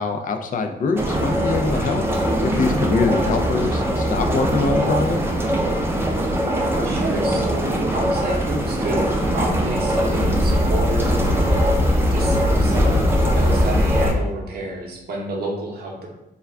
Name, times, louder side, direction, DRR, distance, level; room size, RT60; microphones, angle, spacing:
voice 1, 0.0-2.0 2.4-5.2, left 4 dB, 50° left, 6 dB, 0.4 m, -23 dB
sound 1, 1.0-14.1, right 1 dB, 15° right, 0.5 m, -22 dB
voice 2, 6.7-7.7 7.9-16.1, right 2 dB, 65° right, -1 dB, 0.7 m, -30 dB
sound 2, 9.1-14.1, left 1 dB, 15° left, 0.8 m, -21 dB
2.3 x 2.2 x 3.5 m, 0.91 s
cardioid pair, 60°, 17 cm